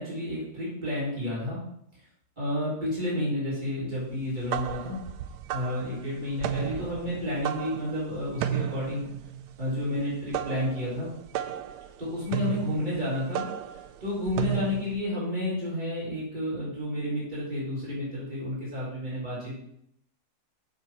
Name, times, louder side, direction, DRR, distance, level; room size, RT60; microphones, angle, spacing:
voice 1, 0.0-1.6 2.4-5.0 5.5-9.1 9.6-11.1 12.0-13.4 14.0-19.6, left 1 dB, 25° right, -8 dB, 4.1 m, -31 dB
sound 1, 4.2-15.0, right 11 dB, 85° right, 1.2 m, -34 dB
7.5 x 7.0 x 4.5 m, 0.73 s
omnidirectional pair, 1.7 m